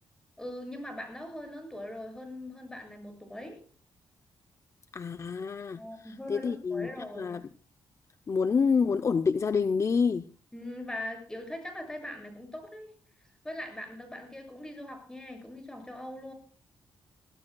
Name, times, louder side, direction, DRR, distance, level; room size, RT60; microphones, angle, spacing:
voice 1, 0.4-3.6 5.8-7.4 10.5-12.9 13.4-16.3, left 1 dB, 10° left, 3 dB, 7.5 m, -41 dB
voice 2, 4.9-7.4 8.3-10.2, left 5 dB, 40° left, 10 dB, 0.6 m, -28 dB
23.5 x 16.5 x 2.3 m, 0.39 s
cardioid pair, 105°, 8 cm